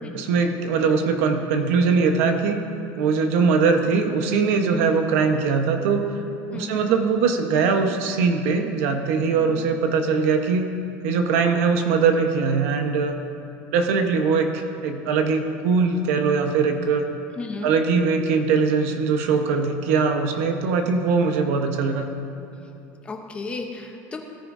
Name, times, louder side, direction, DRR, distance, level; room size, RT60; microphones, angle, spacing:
voice 1, 0.1-2.6 3.0-6.0 6.5-10.7 11.0-13.1 13.7-17.0 17.6-22.0, right 5 dB, 90° right, 5 dB, 1.2 m, -21 dB
voice 2, 17.4-17.7 23.0-24.2, left 3 dB, 15° left, 2 dB, 0.9 m, -34 dB
17.0 x 9.7 x 2.7 m, 2.9 s
cardioid pair, 175°, 8 cm